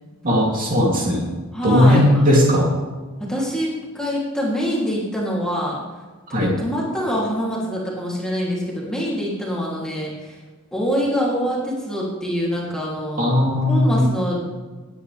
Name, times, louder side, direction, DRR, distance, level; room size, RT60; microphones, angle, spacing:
voice 1, 0.2-1.3 1.6-2.7 6.3-6.5 13.2-14.1, left 1 dB, 40° right, -2 dB, 3.0 m, -17 dB
voice 2, 1.5-2.2 3.2-5.8 6.3-10.4 10.7-13.3 13.7-14.5, equal, 5° left, -5 dB, 3.0 m, -25 dB
19.0 x 9.9 x 3.4 m, 1.3 s
head